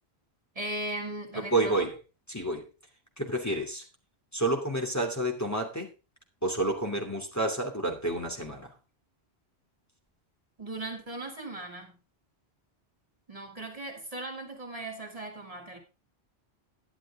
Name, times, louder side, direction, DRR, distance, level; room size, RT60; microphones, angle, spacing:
voice 1, 0.5-1.9 10.6-12.0 13.3-15.8, right 2 dB, 35° right, 2.7 m, -38 dB
voice 2, 1.5-2.0 2.3-2.7 3.2-3.9 4.3-5.9 6.4-8.7, right 2 dB, 15° left, 2.7 m, -29 dB
11.5 x 11.5 x 3.7 m
omnidirectional pair, 1.1 m